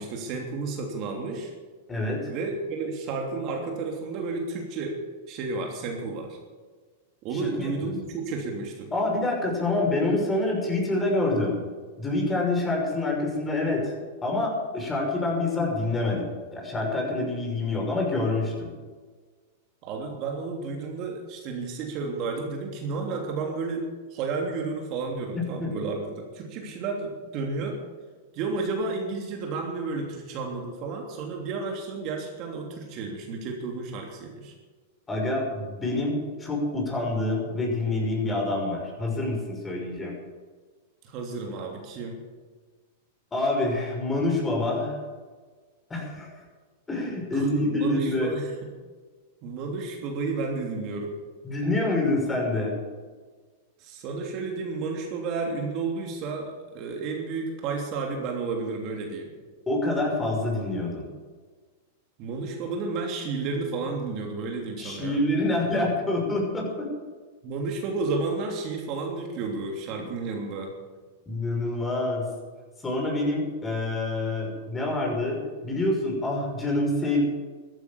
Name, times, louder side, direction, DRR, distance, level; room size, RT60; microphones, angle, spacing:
voice 1, 0.0-1.5 2.3-5.0 5.3-6.4 7.2-8.9 19.8-27.8 28.3-34.5 41.0-42.2 47.3-48.5 49.4-51.2 53.8-59.3 62.2-65.2 67.4-70.7, right 4 dB, 45° right, 1 dB, 3.0 m, -32 dB
voice 2, 1.9-2.3 7.3-7.9 8.9-11.6 12.0-13.9 14.2-18.7 25.3-25.7 35.1-40.1 43.3-45.0 45.9-46.3 46.9-48.3 51.4-52.8 59.7-61.1 64.8-66.9 71.3-72.3 72.8-77.2, left 2 dB, 15° left, 0 dB, 5.8 m, -27 dB
14.0 x 11.5 x 7.1 m, 1.4 s
hypercardioid pair, 115°, 0 cm